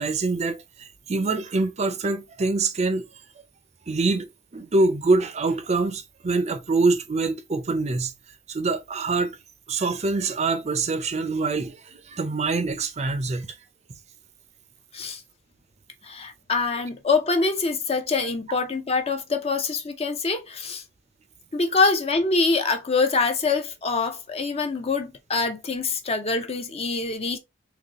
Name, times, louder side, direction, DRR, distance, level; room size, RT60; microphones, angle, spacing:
voice 1, 0.0-3.0 3.9-8.1 8.5-9.4 9.7-13.5, right 3 dB, 35° right, 0.5 m, -25 dB
voice 2, 16.0-20.8 21.5-27.4, left 4 dB, 30° left, 0.6 m, -25 dB
4.0 x 3.0 x 2.9 m
head